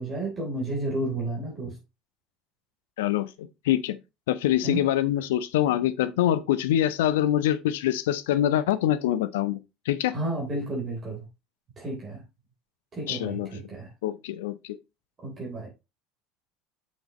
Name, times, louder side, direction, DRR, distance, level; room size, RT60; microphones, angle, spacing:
voice 1, 0.0-1.8 4.6-4.8 10.1-11.2 11.8-12.2 12.9-13.9 15.2-15.7, right 2 dB, 30° right, 3.6 m, -31 dB
voice 2, 3.0-4.0 4.3-9.6 9.9-10.1 13.1-13.5 14.0-14.8, left 12 dB, 65° left, 0.6 m, -25 dB
7.4 x 6.2 x 3.0 m
figure-of-eight pair, 70°, 0 cm